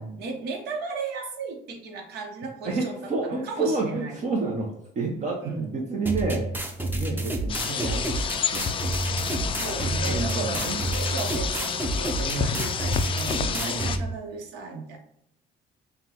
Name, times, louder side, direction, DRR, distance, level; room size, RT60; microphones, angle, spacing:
voice 1, 0.0-4.2 5.4-5.8 9.6-15.0, right 4 dB, 75° right, 2 dB, 1.0 m, -36 dB
voice 2, 2.6-6.5 6.9-10.8 12.1-12.5 13.4-13.9, right 3 dB, 45° right, 0 dB, 0.8 m, -30 dB
sound 1, 6.0-14.0, right 1 dB, 10° right, 0.6 m, -29 dB
sound 2, 7.5-14.0, left 6 dB, 30° left, 0.3 m, -29 dB
5.7 x 2.3 x 3.0 m, 0.76 s
cardioid pair, 110°, 17 cm